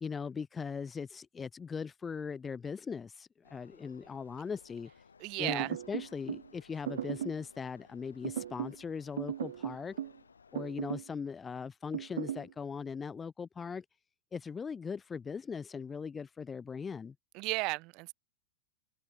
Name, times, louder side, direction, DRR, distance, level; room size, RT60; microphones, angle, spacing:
voice 1, 0.0-4.9 5.4-10.0 10.5-13.9 14.3-17.1, left 6 dB, 15° left, 0.4 m, -39 dB
sound 1, 3.4-10.7, left 5 dB, 75° left, 2.9 m, -60 dB
voice 2, 5.2-5.7 17.3-18.1, right 25 dB, 40° right, 1.8 m, -34 dB
sound 2, 5.5-6.5 6.9-7.4 8.2-8.8 9.2-10.2 10.5-11.1 11.9-12.5, right 10 dB, 60° right, 1.0 m, -37 dB
figure-of-eight pair, 90°, 0 cm